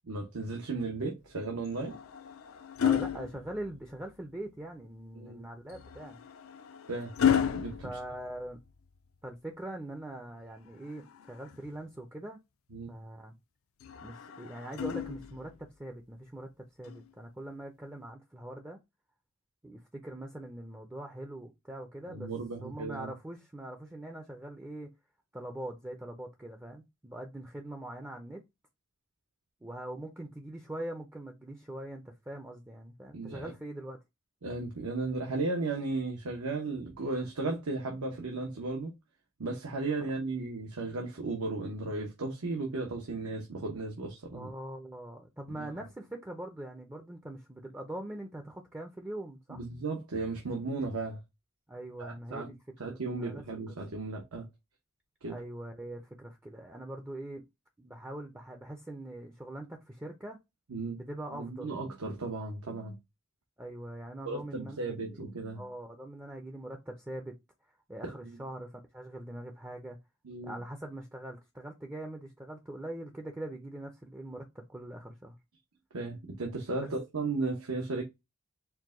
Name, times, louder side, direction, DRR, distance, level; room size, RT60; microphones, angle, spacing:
voice 1, 0.1-1.9 5.1-5.4 6.9-7.1 7.5-7.7 12.7-12.9 22.1-23.1 33.1-33.5 34.4-38.9 39.4-44.5 45.6-45.7 49.5-51.2 52.0-52.5 52.8-54.5 55.2-55.4 60.7-61.0 61.3-63.0 64.2-65.6 68.0-68.4 70.2-70.6 75.9-78.0, right 3 dB, 85° right, 0.9 m, -35 dB
sound 1, 1.6-4.1 5.7-8.9 10.7-11.8 13.8-15.6 16.8-17.1, left 8 dB, 65° left, 0.4 m, -33 dB
voice 2, 2.8-6.2 7.8-8.6 9.2-12.4 12.9-13.3 14.0-18.8 19.6-22.3 22.6-24.9 25.3-28.4 29.6-34.0 40.0-40.1 44.3-49.6 51.7-53.7 55.3-57.4 57.8-60.4 61.0-61.8 63.6-67.4 67.9-70.0 70.4-75.3 76.8-76.9, right 1 dB, 10° right, 0.4 m, -42 dB
4.6 x 2.2 x 3.6 m
head